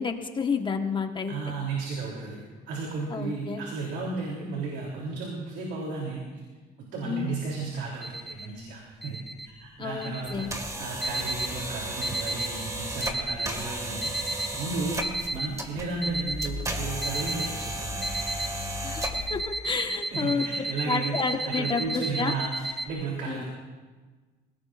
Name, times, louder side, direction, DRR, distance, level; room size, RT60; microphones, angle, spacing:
voice 1, 0.0-1.3 3.1-3.7 7.0-7.4 9.8-10.5 18.8-19.0 19.3-20.4 20.9-22.3 23.3-23.4, left 5 dB, 30° left, 4 dB, 1.4 m, -30 dB
voice 2, 1.3-2.4 2.7-6.3 6.8-9.2 9.4-14.1 14.6-18.1 20.1-23.4, right 4 dB, 80° right, -2 dB, 3.4 m, -34 dB
sound 1, 8.0-8.5 9.0-9.5 10.0-10.5 11.0-11.6 12.0-12.6 13.0-13.6 14.0-14.6 15.0-15.6 16.0-16.6 17.0-17.6 18.0-18.6 19.0-22.9, right 2 dB, ahead, 1.5 m, -33 dB
sound 2, 10.2-19.4, right 1 dB, 20° right, 2.0 m, -34 dB
27.0 x 17.5 x 2.6 m, 1.4 s
cardioid pair, 110°, 17 cm